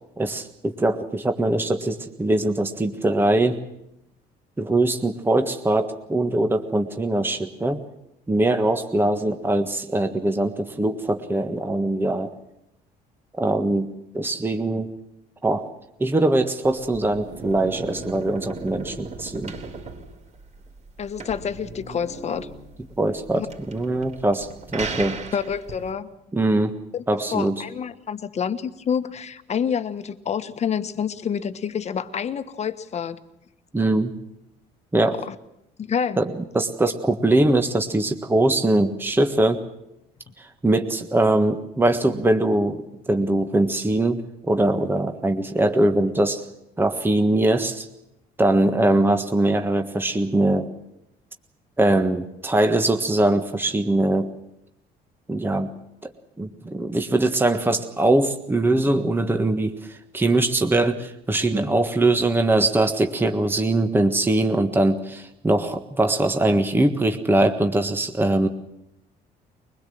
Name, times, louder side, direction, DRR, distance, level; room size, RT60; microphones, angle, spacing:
voice 1, 0.2-3.6 4.6-7.8 8.3-12.3 13.4-13.9 14.1-14.9 15.4-15.6 16.0-19.5 23.0-25.2 26.3-26.7 27.1-27.6 33.7-34.1 34.9-35.1 36.2-39.6 40.6-44.2 44.5-46.4 46.8-47.9 48.4-50.7 51.8-54.3 55.3-55.7 56.0-56.1 56.4-68.5, right 2 dB, 10° right, 6 dB, 1.5 m, -22 dB
sound 1, 16.6-25.9, right 4 dB, 45° right, 4.1 m, -37 dB
voice 2, 21.0-22.5 23.3-23.5 25.3-26.1 26.9-27.0 27.3-33.2 35.0-35.3 35.9-36.2, left 7 dB, 40° left, 11 dB, 1.4 m, -28 dB
22.5 x 21.0 x 7.8 m, 0.83 s
cardioid pair, 110°, 17 cm